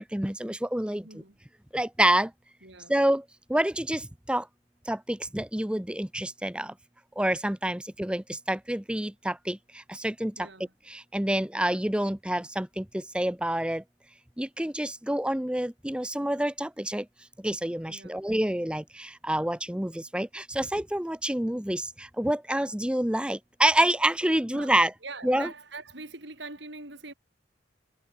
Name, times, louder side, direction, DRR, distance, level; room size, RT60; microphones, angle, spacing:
voice 1, 0.0-1.1 1.7-2.3 2.9-3.2 3.5-4.5 4.9-6.7 7.2-10.5 10.9-13.8 14.4-17.1 17.4-24.9 25.2-25.5, right 1 dB, 5° right, 0.7 m, -28 dB
voice 2, 1.0-1.4 2.6-2.9 10.4-10.7 17.9-18.2 24.5-24.8 25.0-27.1, right 3 dB, 60° right, 4.7 m, -43 dB
head